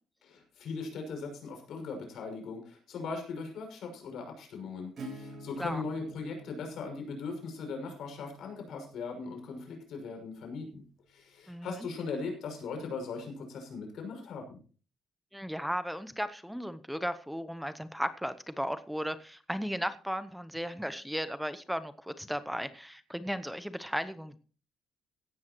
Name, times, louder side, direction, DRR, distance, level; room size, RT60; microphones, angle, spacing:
voice 1, 0.2-14.6, left 4 dB, 65° left, 4 dB, 6.2 m, -39 dB
Acoustic guitar / Strum, 5.0-10.5, right 1 dB, 45° right, 7.5 m, -49 dB
voice 2, 11.5-11.8 15.3-24.4, equal, ahead, 12 dB, 0.8 m, -35 dB
16.5 x 12.5 x 3.0 m, 0.38 s
cardioid pair, 150°, 0 cm